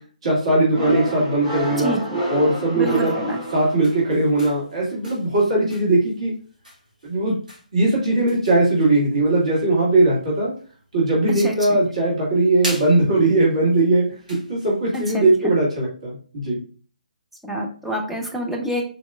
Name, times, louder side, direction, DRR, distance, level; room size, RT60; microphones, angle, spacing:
voice 1, 0.2-2.0 2.3-3.1 3.5-6.3 7.0-7.3 7.7-10.5 10.9-16.6, right 2 dB, 50° right, -5 dB, 1.6 m, -19 dB
sound 1, 0.7-4.3, right 1 dB, 25° right, 1.7 m, -28 dB
voice 2, 1.8-2.2 2.7-3.4 11.3-11.8 14.9-15.3 17.4-18.8, equal, ahead, 0 dB, 0.4 m, -27 dB
sound 2, 2.9-15.5, equal, 75° right, 1.5 m, -42 dB
3.8 x 2.8 x 2.3 m, 0.42 s
figure-of-eight pair, 140°, 4 cm